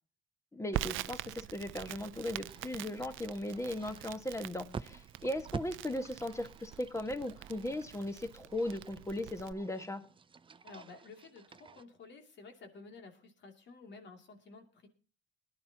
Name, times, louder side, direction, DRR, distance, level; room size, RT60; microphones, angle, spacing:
voice 1, 0.5-10.0, left 1 dB, 15° left, 9 dB, 1.5 m, -37 dB
Crackle, 0.7-9.5, right 14 dB, 80° right, 0.5 m, -44 dB
sound 1, 2.3-11.8, right 5 dB, 25° right, 0.6 m, -50 dB
voice 2, 10.6-14.9, left 3 dB, 65° left, 5 dB, 2.7 m, -52 dB
20.0 x 11.0 x 2.8 m, 0.37 s
cardioid pair, 90°, 20 cm